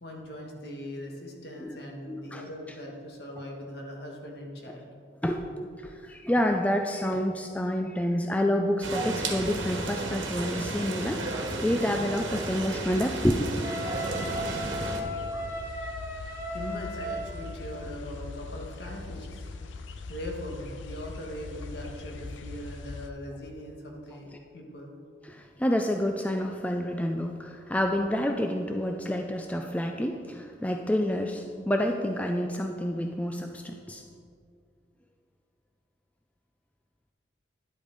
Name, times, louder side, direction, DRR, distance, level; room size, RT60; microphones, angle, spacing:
voice 1, 0.0-4.9 16.2-19.5 20.1-24.3 24.5-24.9, equal, 55° left, 0 dB, 1.6 m, -40 dB
voice 2, 2.1-2.4 5.2-13.5 25.2-34.0, equal, 5° left, 3 dB, 0.3 m, -28 dB
sound 1, 8.8-15.0, right 2 dB, 90° right, 1.4 m, -33 dB
Wind instrument woodwind instrument, 13.6-17.5, equal, 15° right, 1.7 m, -36 dB
sound 2, 14.1-23.1, left 3 dB, 80° left, 0.5 m, -41 dB
11.0 x 8.2 x 4.0 m, 2.3 s
head